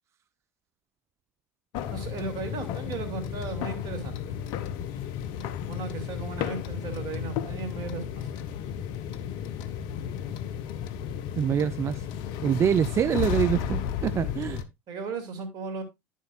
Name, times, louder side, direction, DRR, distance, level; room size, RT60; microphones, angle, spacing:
sound 1, 1.7-14.6, left 9 dB, 60° left, 0.8 m, -33 dB
voice 1, 1.9-4.4 5.7-8.3 14.9-15.8, right 4 dB, 55° right, 2.4 m, -36 dB
voice 2, 11.4-12.1 12.4-14.6, right 9 dB, 35° right, 0.4 m, -25 dB
10.5 x 7.4 x 2.4 m
hypercardioid pair, 75°, 8 cm